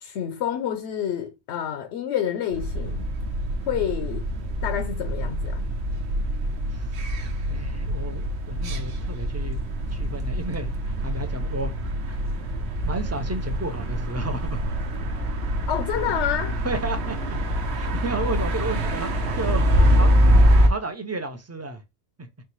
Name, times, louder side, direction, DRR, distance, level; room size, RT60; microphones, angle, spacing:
voice 1, 0.0-3.1 3.7-4.3 4.6-5.7 15.7-16.6, left 10 dB, 80° left, 0.9 m, -28 dB
sound 1, 2.5-20.7, equal, 70° right, 1.0 m, -24 dB
voice 2, 7.5-9.6 9.9-10.7 11.0-11.7 12.1-12.2 12.8-14.6 16.6-17.2 17.7-19.7 19.9-20.1 20.6-21.8 22.2-22.3, right 2 dB, 25° right, 0.3 m, -32 dB
4.5 x 2.9 x 3.0 m
omnidirectional pair, 1.1 m